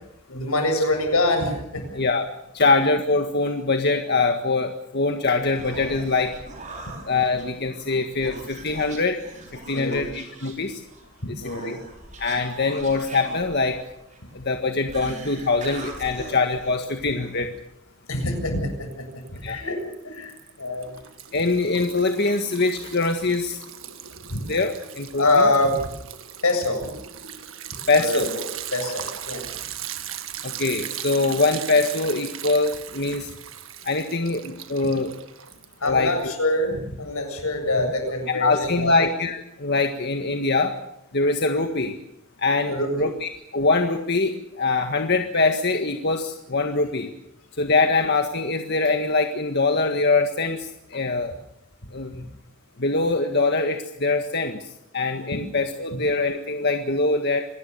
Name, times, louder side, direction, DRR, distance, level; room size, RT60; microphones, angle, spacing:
voice 1, 0.3-1.9 9.7-10.0 11.4-11.8 18.1-21.0 24.3-24.4 25.2-25.9 26.4-26.9 28.0-28.5 28.7-29.4 35.8-38.9 42.7-43.1, left 2 dB, 85° left, 5 dB, 7.6 m, -25 dB
voice 2, 2.0-2.3 2.5-6.3 7.1-9.2 9.7-10.8 11.6-11.7 12.2-13.8 14.3-17.5 19.4-19.6 21.3-23.6 24.5-25.3 27.9-28.3 30.4-33.3 33.8-35.1 35.8-36.1 38.3-40.7 41.1-41.9 42.4-47.1 47.6-51.3 51.9-52.2 52.8-54.6 54.9-57.5, left 3 dB, 50° left, 5 dB, 1.7 m, -23 dB
Human voice, 5.2-17.4, right 2 dB, 35° right, 6.4 m, -42 dB
Liquid, 18.9-19.5 19.8-36.0, right 10 dB, 65° right, 1.8 m, -38 dB
26.0 x 19.5 x 6.9 m, 0.80 s
head